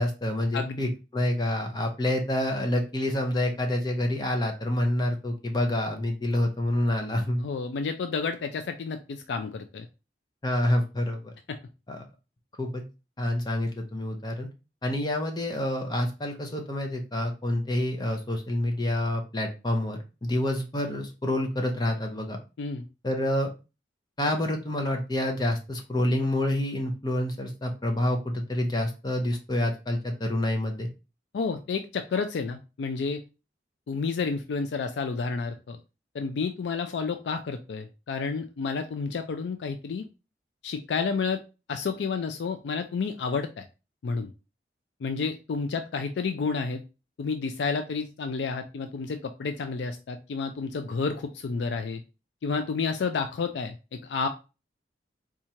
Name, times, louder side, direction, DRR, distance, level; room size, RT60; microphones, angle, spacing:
voice 1, 0.0-7.4 10.4-11.3 11.9-12.0 12.6-12.8 13.2-14.5 14.8-22.4 23.0-23.5 24.2-30.9, left 1 dB, 25° left, 3 dB, 0.5 m, -27 dB
voice 2, 0.5-0.9 7.4-9.9 11.5-11.6 22.6-22.8 31.3-33.2 33.9-35.8 36.1-40.0 40.6-41.4 41.7-43.7 44.0-44.3 45.0-46.8 47.2-52.0 52.4-54.3, left 5 dB, 80° left, 7 dB, 0.4 m, -30 dB
4.3 x 2.4 x 2.7 m, 0.29 s
head